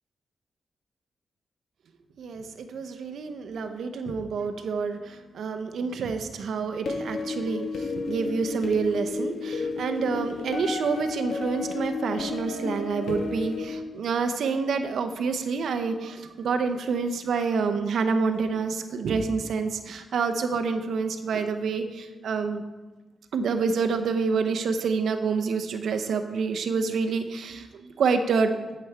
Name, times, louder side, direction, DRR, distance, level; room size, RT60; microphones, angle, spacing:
voice 1, 2.2-22.6 23.3-28.5, right 5 dB, 80° right, 7 dB, 0.7 m, -28 dB
sound 1, 6.9-13.6, left 4 dB, 80° left, 1.6 m, -32 dB
8.4 x 7.7 x 4.5 m, 1.2 s
cardioid pair, 75°, 0 cm